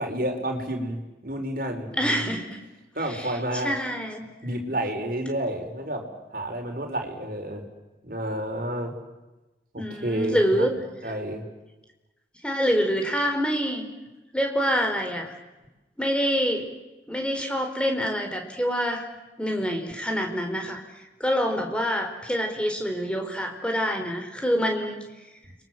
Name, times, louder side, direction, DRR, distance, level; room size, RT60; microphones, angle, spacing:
voice 1, 0.0-2.3 2.9-3.7 4.4-7.6 8.0-9.0 9.7-10.7 11.0-11.4, right 1 dB, 50° right, 3 dB, 4.8 m, -30 dB
voice 2, 2.0-2.6 3.0-4.3 9.8-10.7 12.4-13.9 14.3-15.3 16.0-16.7 17.1-19.1 19.4-20.8 21.2-25.1, equal, 5° left, 3 dB, 4.2 m, -26 dB
30.0 x 24.0 x 7.7 m, 1.1 s
head